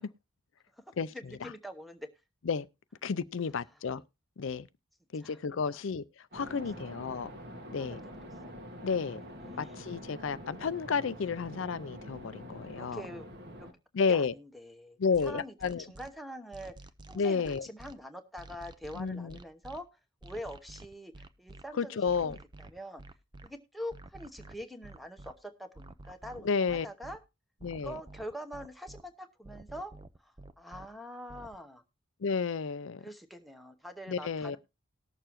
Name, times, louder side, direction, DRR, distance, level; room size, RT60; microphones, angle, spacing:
voice 1, 0.7-2.1 3.7-3.8 5.2-5.8 6.7-6.9 7.8-8.0 9.4-10.2 12.7-13.3 13.6-13.7 14.1-16.8 17.1-23.0 23.4-27.2 27.7-29.9 30.2-31.8 33.0-34.6, equal, ahead, 0.9 m, -45 dB
voice 2, 3.0-4.0 4.4-4.7 5.1-6.0 6.3-7.3 7.7-8.0 8.8-9.2 9.6-13.0 13.9-14.3 15.0-15.8 17.2-17.6 19.0-19.4 21.8-22.4 26.4-26.9 27.6-27.9 32.2-33.0 34.1-34.6, left 5 dB, 65° left, 0.5 m, -31 dB
sound 1, 6.3-13.7, equal, 50° right, 1.5 m, -46 dB
sound 2, 15.1-16.1 16.5-17.9 18.4-19.8 20.2-21.6 22.1-23.5 23.9-25.3 25.8-27.2 27.6-29.0 29.4-30.9 31.3-31.6, right 2 dB, 20° right, 0.5 m, -49 dB
19.0 x 6.8 x 3.0 m
head